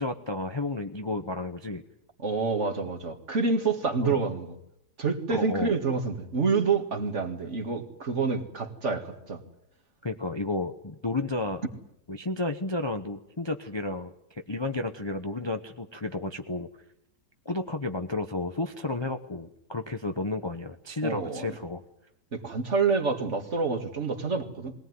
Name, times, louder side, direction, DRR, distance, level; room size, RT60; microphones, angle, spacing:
voice 1, 0.0-1.8 4.0-4.2 5.3-5.7 10.0-11.6 12.1-16.7 17.4-21.8, left 2 dB, 20° left, 7 dB, 0.8 m, -32 dB
voice 2, 2.2-4.5 5.0-9.4 21.0-21.5 22.3-24.7, right 4 dB, 45° right, 4 dB, 2.3 m, -28 dB
21.5 x 18.5 x 9.6 m, 0.80 s
omnidirectional pair, 1.7 m